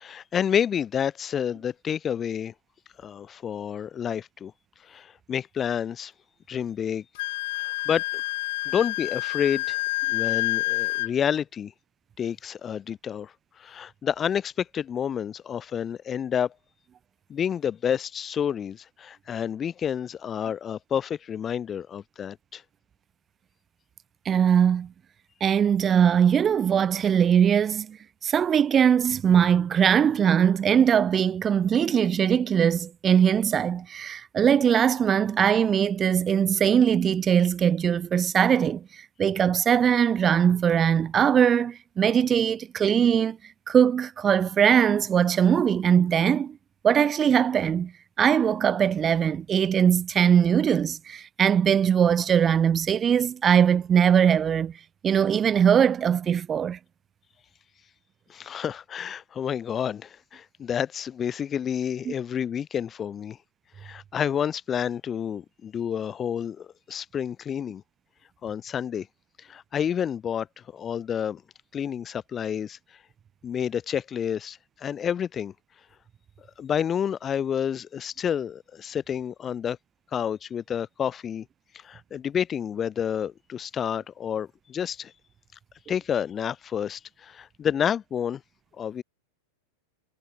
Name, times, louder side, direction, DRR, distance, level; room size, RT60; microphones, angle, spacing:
voice 1, 0.0-2.5 3.0-4.5 4.8-6.1 6.5-7.0 7.6-8.2 8.6-9.8 10.1-11.7 12.2-16.5 17.3-22.6 58.3-63.4 63.8-67.8 68.4-69.1 69.4-70.5 70.7-71.4 71.7-72.8 73.4-75.5 76.6-79.8 80.1-81.4 81.8-85.1 85.9-88.4 88.8-89.0, left 8 dB, 25° left, 3.5 m, -29 dB
Wind instrument woodwind instrument, 7.1-11.1, left 22 dB, 50° left, 4.4 m, -28 dB
voice 2, 24.2-24.9 25.4-28.0 28.2-43.4 43.7-46.6 46.8-47.9 48.2-54.7 55.0-56.8 62.1-62.2, right 8 dB, 25° right, 3.2 m, -21 dB
figure-of-eight pair, 90°, 0 cm